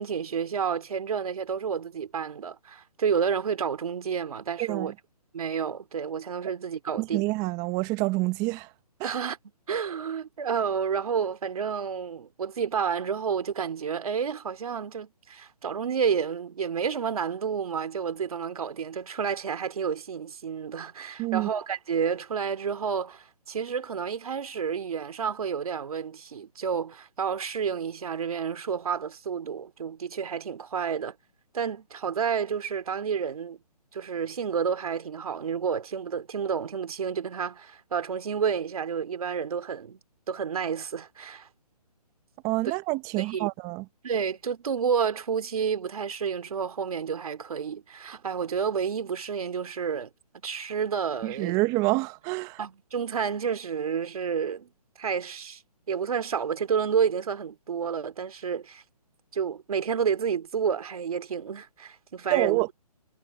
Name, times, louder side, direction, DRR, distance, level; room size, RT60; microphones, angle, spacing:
voice 1, 0.0-4.9 5.3-7.2 9.0-9.4 9.7-31.1 31.5-33.6 33.9-40.0 40.3-41.5 43.2-43.5 44.0-50.1 50.4-51.6 52.6-54.7 55.0-55.6 55.9-58.8 59.3-62.6, right 7 dB, 60° right, 2.6 m, -30 dB
voice 2, 4.6-4.9 7.0-8.7 9.0-9.1 21.2-21.5 42.4-43.9 51.2-52.6 62.3-62.7, right 22 dB, 15° right, 0.9 m, -27 dB
hypercardioid pair, 155°, 20 cm